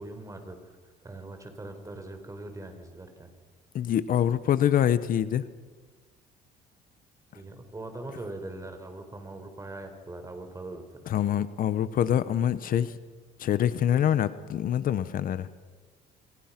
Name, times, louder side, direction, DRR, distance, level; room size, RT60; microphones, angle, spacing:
voice 1, 0.0-3.3 7.3-11.0, right 2 dB, 20° right, 6 dB, 4.6 m, -41 dB
voice 2, 3.7-5.4 11.1-12.9 13.4-15.5, left 10 dB, 55° left, 14 dB, 1.0 m, -25 dB
28.5 x 25.5 x 6.0 m, 1.4 s
cardioid pair, 110°, 17 cm